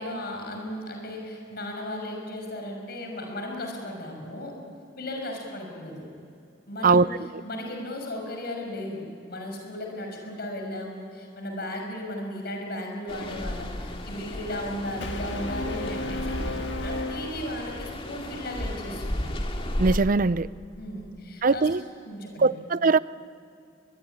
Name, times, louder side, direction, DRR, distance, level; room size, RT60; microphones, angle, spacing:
voice 1, 0.0-4.6 5.0-6.1 6.7-7.1 7.4-19.4 20.8-21.7 22.0-22.6, left 1 dB, 60° left, 2 dB, 6.2 m, -36 dB
sound 1, 13.1-20.0, left 1 dB, 30° left, 2.2 m, -34 dB
Brass instrument, 15.0-18.1, left 1 dB, 85° left, 1.9 m, -34 dB
voice 2, 19.8-20.5 21.4-21.8 22.4-23.0, right 4 dB, 50° right, 17 dB, 0.5 m, -20 dB
24.0 x 21.5 x 9.9 m, 2.5 s
head